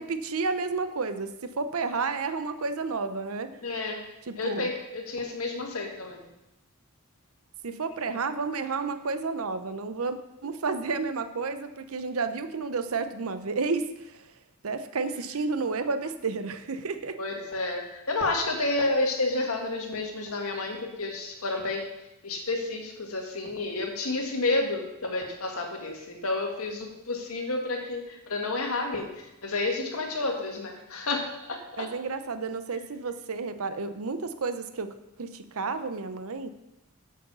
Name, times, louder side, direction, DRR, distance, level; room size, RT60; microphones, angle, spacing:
voice 1, 0.0-3.5 4.3-4.7 7.6-14.2 14.6-17.2 31.8-34.9 35.2-36.5, right 4 dB, 70° right, 10 dB, 0.7 m, -31 dB
voice 2, 3.6-4.0 4.4-6.3 17.2-21.9 22.2-31.9, left 2 dB, 75° left, 2 dB, 1.8 m, -30 dB
8.0 x 6.4 x 6.8 m, 0.92 s
head